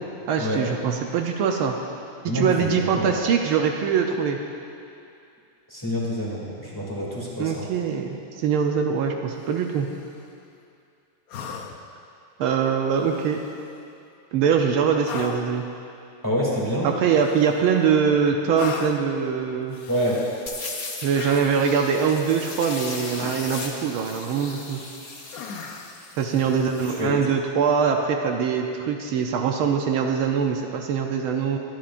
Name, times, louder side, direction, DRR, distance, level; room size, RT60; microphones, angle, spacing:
voice 1, 0.3-1.8 2.3-4.4 7.4-9.9 12.4-13.4 14.3-15.6 16.8-19.8 21.0-24.8 26.2-31.6, right 6 dB, 80° right, 3 dB, 1.6 m, -23 dB
voice 2, 2.3-3.1 5.7-7.7 16.2-16.9 19.9-20.3 26.5-26.6 27.0-27.1, equal, 10° left, -6 dB, 2.6 m, -27 dB
sound 1, 9.4-10.1 11.3-12.0 13.0-13.7 15.0-15.6 17.1-17.9 18.5-19.1 19.7-20.6 21.1-21.8 23.2-23.7 24.2-24.8 25.3-26.1 27.9-28.0, left 5 dB, 70° left, 0.8 m, -38 dB
sound 2, 20.5-27.0, left 3 dB, 40° left, 0.9 m, -37 dB
24.0 x 10.5 x 2.6 m, 2.5 s
omnidirectional pair, 2.4 m